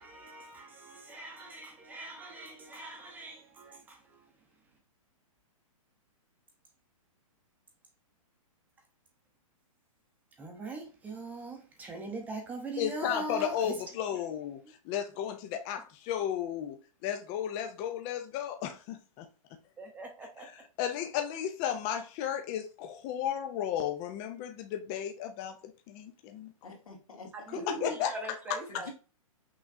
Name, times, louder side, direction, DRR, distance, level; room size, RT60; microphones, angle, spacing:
voice 1, 0.0-4.3 10.4-14.2 14.6-14.7 19.8-20.5 27.5-28.9, right 2 dB, 10° right, 0.7 m, -41 dB
voice 2, 12.8-19.3 20.4-25.6 25.9-26.5 27.5-28.8, left 9 dB, 20° left, 0.3 m, -34 dB
voice 3, 26.6-27.8 28.7-28.9, left 3 dB, 85° left, 2.1 m, -48 dB
5.9 x 3.1 x 2.5 m
hypercardioid pair, 155°, 18 cm